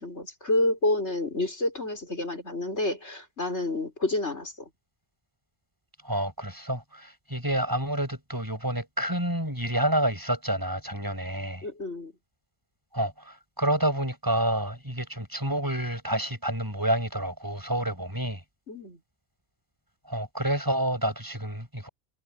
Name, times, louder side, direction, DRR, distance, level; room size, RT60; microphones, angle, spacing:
voice 1, 0.0-4.5 11.6-12.1 18.7-19.0, left 2 dB, 55° left, 6.3 m, -29 dB
voice 2, 6.0-11.7 12.9-18.4 20.1-21.9, right 1 dB, 15° right, 7.6 m, -29 dB
omnidirectional pair, 1.4 m